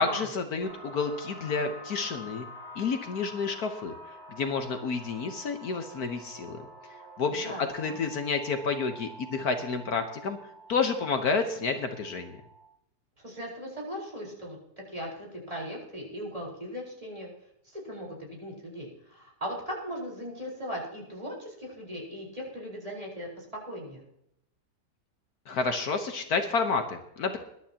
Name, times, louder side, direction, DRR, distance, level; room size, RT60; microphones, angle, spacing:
voice 1, 0.0-2.4 2.7-3.9 4.3-6.6 7.2-10.4 10.7-12.3 25.5-27.4, left 4 dB, 65° left, 6 dB, 1.6 m, -30 dB
sound 1, 0.6-12.7, equal, 85° right, 6.3 m, -47 dB
voice 2, 7.3-8.0 13.2-14.6 14.9-17.3 17.6-24.0, equal, 20° right, -3 dB, 4.6 m, -38 dB
21.5 x 11.5 x 2.9 m, 0.78 s
omnidirectional pair, 1.8 m